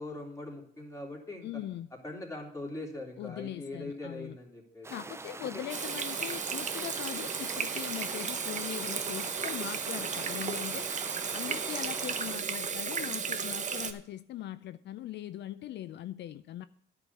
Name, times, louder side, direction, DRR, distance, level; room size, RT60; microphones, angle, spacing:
voice 1, 0.0-1.5 2.0-4.9 5.5-5.6, left 2 dB, 15° left, 3.3 m, -41 dB
voice 2, 1.4-1.9 3.2-4.4 4.9-10.9 11.3-16.7, left 12 dB, 75° left, 0.4 m, -40 dB
sound 1, 4.8-12.4, right 3 dB, 15° right, 0.5 m, -44 dB
Water tap faucet / Sink (filling or washing), 5.7-13.9, right 6 dB, 40° right, 1.0 m, -34 dB
10.5 x 5.0 x 8.1 m
cardioid pair, 90°, 18 cm